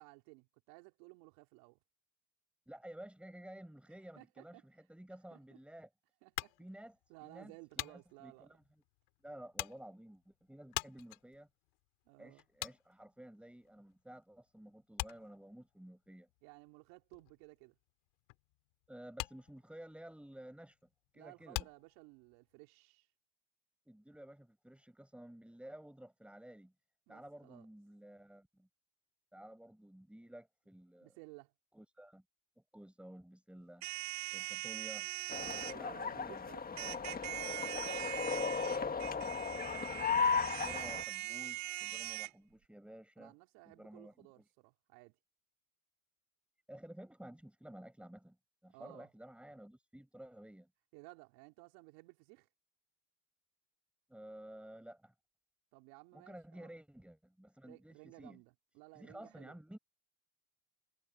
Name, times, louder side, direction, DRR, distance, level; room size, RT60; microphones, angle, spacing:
voice 1, 0.0-1.8 4.2-4.7 5.3-5.6 6.2-6.6 7.1-8.5 12.1-12.4 16.4-17.8 21.1-23.1 27.1-27.7 31.0-31.5 35.7-36.6 43.2-45.2 48.7-49.1 50.9-52.5 55.7-56.8 57.6-59.6, right 28 dB, 70° right, 3.7 m, -57 dB
voice 2, 2.7-5.9 6.6-7.0 7.2-8.6 9.2-11.5 12.2-16.3 18.9-21.7 23.9-26.7 27.1-28.7 29.3-31.1 31.7-32.2 32.6-33.9 34.3-35.1 35.7-36.5 36.8-37.0 38.0-39.3 40.6-43.3 43.6-44.4 46.7-48.4 48.6-50.7 54.1-55.1 56.1-58.4 58.9-59.8, right 1 dB, 5° right, 7.4 m, -53 dB
sound 1, 6.4-14.2 14.5-22.5, left 27 dB, 70° left, 2.5 m, -46 dB
sound 2, 33.8-35.7 36.8-42.3, right 18 dB, 40° right, 0.6 m, -42 dB
sound 3, 35.3-41.0, left 5 dB, 20° left, 1.7 m, -36 dB
supercardioid pair, 105°, 44 cm